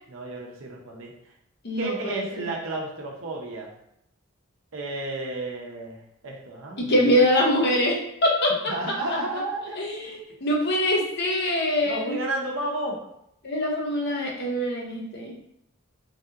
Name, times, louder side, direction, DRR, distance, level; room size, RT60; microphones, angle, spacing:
voice 1, 0.1-1.1 1.8-3.7 4.7-7.1 8.7-9.8 11.8-13.0, right 2 dB, 80° right, -1 dB, 0.7 m, -32 dB
voice 2, 1.6-2.5 6.8-8.5 9.8-12.2 13.4-15.3, left 1 dB, 55° left, -1 dB, 0.7 m, -24 dB
3.3 x 2.8 x 2.4 m, 0.79 s
head